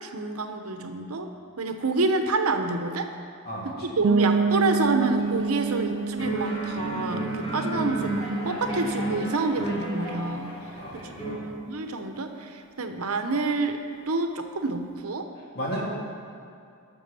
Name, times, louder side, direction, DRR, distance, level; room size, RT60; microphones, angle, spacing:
voice 1, 0.0-1.3 1.6-3.1 3.6-10.6 10.9-13.8 14.1-15.3, right 3 dB, 70° right, 6 dB, 0.9 m, -28 dB
voice 2, 3.4-3.9 10.7-11.4 15.5-15.8, equal, 45° left, -4 dB, 2.7 m, -34 dB
sound 1, 4.0-9.6, right 4 dB, 50° right, 0.4 m, -28 dB
sound 2, 5.1-5.8 6.2-11.3, right 1 dB, 25° left, 2.9 m, -32 dB
13.0 x 6.3 x 6.8 m, 2.5 s
head